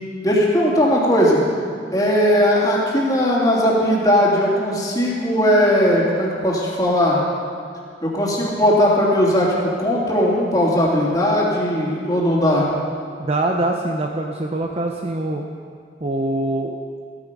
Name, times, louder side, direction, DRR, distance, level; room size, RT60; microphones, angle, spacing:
voice 1, 0.2-1.4 1.9-7.2 8.0-12.7, equal, 20° left, -5 dB, 3.2 m, -18 dB
voice 2, 13.2-15.4 16.0-16.8, right 2 dB, 35° right, 1 dB, 0.8 m, -23 dB
15.5 x 14.0 x 5.4 m, 2.2 s
head